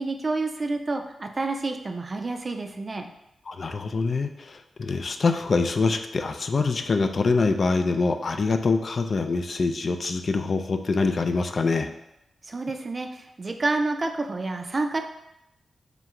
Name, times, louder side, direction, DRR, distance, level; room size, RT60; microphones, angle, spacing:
voice 1, 0.0-3.1 12.4-15.0, right 3 dB, 40° right, 5 dB, 0.4 m, -29 dB
voice 2, 3.5-11.9, left 4 dB, 55° left, 6 dB, 0.3 m, -25 dB
3.3 x 3.0 x 3.6 m, 0.86 s
cardioid pair, 75°, 0 cm